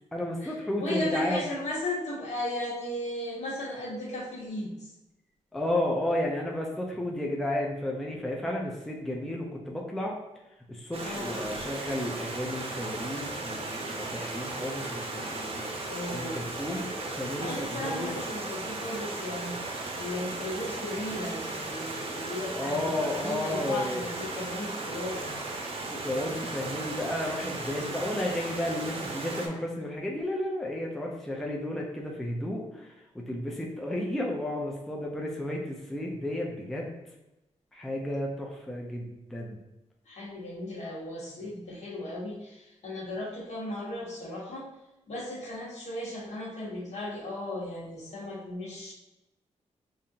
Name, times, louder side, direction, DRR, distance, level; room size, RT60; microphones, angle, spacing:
voice 1, 0.1-1.4 5.5-10.2 10.7-18.1 22.6-24.1 25.9-37.0 37.7-39.6, left 1 dB, ahead, -1 dB, 0.4 m, -33 dB
voice 2, 0.8-4.9 11.0-11.4 15.9-16.5 17.4-25.4 40.0-44.7 45.1-48.9, left 1 dB, 65° left, -5 dB, 1.3 m, -36 dB
Stream, 10.9-29.5, right 2 dB, 50° right, 0.7 m, -36 dB
5.2 x 2.5 x 2.8 m, 0.96 s
wide cardioid pair, 150°, 12 cm